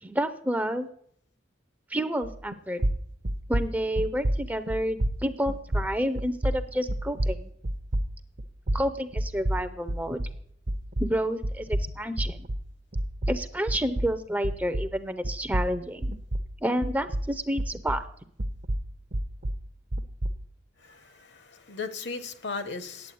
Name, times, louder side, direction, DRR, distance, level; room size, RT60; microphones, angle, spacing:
voice 1, 0.0-0.9 1.9-2.8 3.5-7.5 8.7-10.2 11.0-12.5 13.3-16.1 16.6-18.0, equal, 10° right, 9 dB, 0.5 m, -29 dB
sound 1, 2.2-2.5 2.8-10.4 10.7-15.0 15.2-18.1 18.4-20.4, right 1 dB, 45° right, 0.7 m, -30 dB
voice 2, 20.8-23.1, left 4 dB, 60° left, 11 dB, 1.0 m, -37 dB
9.2 x 8.7 x 8.4 m, 0.66 s
head